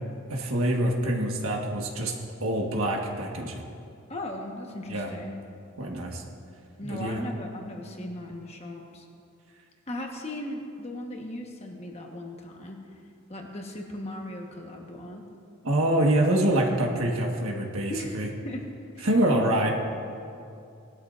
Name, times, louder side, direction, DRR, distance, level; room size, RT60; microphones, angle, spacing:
voice 1, 0.3-2.1 2.4-3.6 4.9-5.1 5.8-6.2 6.8-7.2 15.6-18.3 19.0-19.7, right 1 dB, 80° right, 0 dB, 1.5 m, -25 dB
voice 2, 4.1-5.4 6.8-9.1 9.9-12.8 13.3-15.2 17.9-19.1, left 1 dB, 30° left, 1 dB, 1.3 m, -37 dB
19.0 x 12.5 x 2.6 m, 2.5 s
head